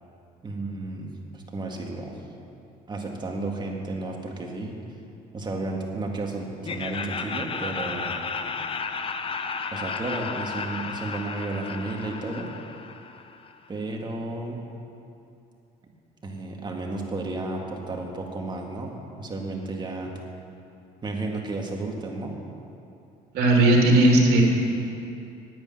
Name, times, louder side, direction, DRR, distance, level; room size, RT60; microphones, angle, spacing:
voice 1, 0.4-2.2 2.9-4.7 5.3-8.1 9.7-12.5 13.7-14.6 15.8-15.9 16.2-20.1 21.0-22.4, right 2 dB, 25° right, 0 dB, 2.2 m, -32 dB
Laughter, 6.6-13.6, left 5 dB, 35° left, 0.7 m, -33 dB
voice 2, 23.3-24.4, right 1 dB, 70° right, -1 dB, 3.4 m, -17 dB
10.5 x 10.0 x 9.0 m, 2.7 s
cardioid pair, 110°, 17 cm